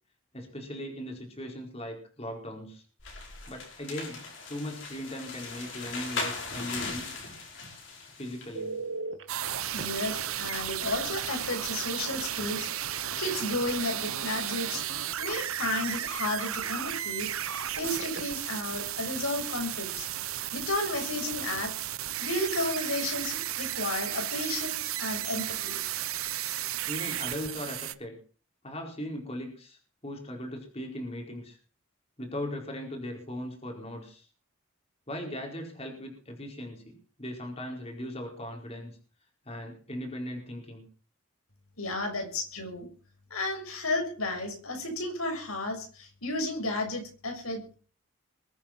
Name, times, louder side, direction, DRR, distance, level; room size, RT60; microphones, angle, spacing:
voice 1, 0.3-2.8 3.5-7.1 8.2-8.8 16.6-16.7 26.9-28.2 28.6-31.6 32.2-34.3 35.1-38.9 39.4-40.8, left 1 dB, 30° left, 2 dB, 4.7 m, -38 dB
sound 1, 3.0-8.6, left 3 dB, 55° left, 6.2 m, -38 dB
Telephone, 8.5-9.2 9.8-9.9 11.6-11.8 12.2-12.4 17.6-18.5 25.6-25.8, right 3 dB, 55° right, 2.0 m, -38 dB
sound 2, 9.3-27.9, right 11 dB, 80° right, 1.1 m, -34 dB
voice 2, 9.7-14.8 15.2-20.1 20.5-21.7 22.2-25.8 41.8-42.9 43.3-47.8, left 2 dB, 90° left, 4 dB, 6.5 m, -33 dB
22.5 x 8.9 x 6.0 m, 0.40 s
head